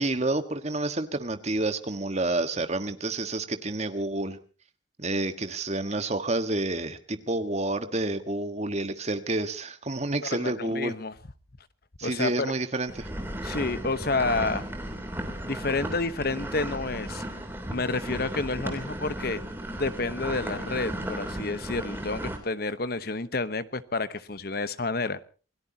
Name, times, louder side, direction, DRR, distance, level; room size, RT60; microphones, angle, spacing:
voice 1, 0.0-4.4 5.0-10.9 12.0-13.1, right 2 dB, 35° right, 9 dB, 1.5 m, -29 dB
voice 2, 10.3-11.1 12.0-12.5 13.4-14.6 15.4-17.2 17.7-19.4 19.7-25.2, left 3 dB, 55° left, 14 dB, 1.0 m, -29 dB
sound 1, 12.9-22.4, right 1 dB, 10° right, 3.2 m, -35 dB
28.0 x 17.5 x 2.9 m, 0.38 s
head